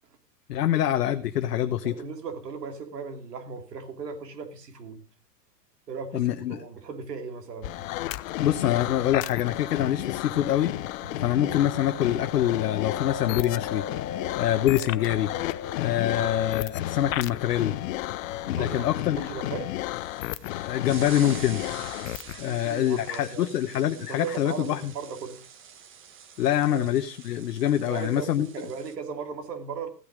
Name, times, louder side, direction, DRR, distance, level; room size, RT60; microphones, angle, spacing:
voice 1, 0.5-1.9 6.1-6.6 8.4-10.7 11.2-15.3 15.8-17.7 18.4-19.3 20.5-21.6 22.4-24.9 26.4-28.5, left 11 dB, 75° left, 7 dB, 1.1 m, -25 dB
voice 2, 1.6-5.0 5.9-7.7 11.0-11.3 16.1-16.4 18.4-19.7 22.4-23.5 23.9-25.4 26.7-26.9 27.8-28.3 28.5-29.9, right 5 dB, 80° right, 6 dB, 3.0 m, -37 dB
sound 1, 7.6-22.4, left 15 dB, 55° left, 0.9 m, -33 dB
sound 2, 11.3-20.7, left 7 dB, 40° left, 1.1 m, -40 dB
sound 3, 19.9-28.9, right 8 dB, 25° right, 1.5 m, -46 dB
15.5 x 8.7 x 5.2 m, 0.37 s
hypercardioid pair, 115°, 48 cm